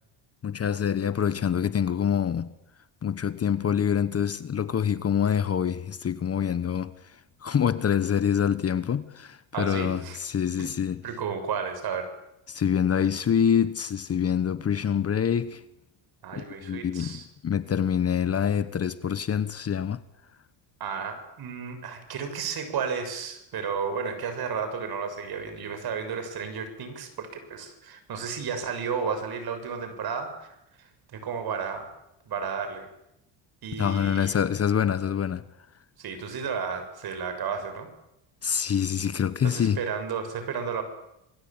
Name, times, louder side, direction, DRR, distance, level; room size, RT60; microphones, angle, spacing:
voice 1, 0.4-2.5 3.0-11.0 12.5-15.6 16.3-20.0 33.7-35.4 38.4-39.8, left 8 dB, 30° left, 1.2 m, -26 dB
voice 2, 9.5-10.2 10.6-10.7 11.0-12.1 16.2-17.2 20.8-31.9 32.3-32.9 33.6-34.3 36.0-37.9 39.4-40.8, right 6 dB, 50° right, 6.8 m, -33 dB
27.5 x 21.5 x 8.9 m
cardioid pair, 115°, 46 cm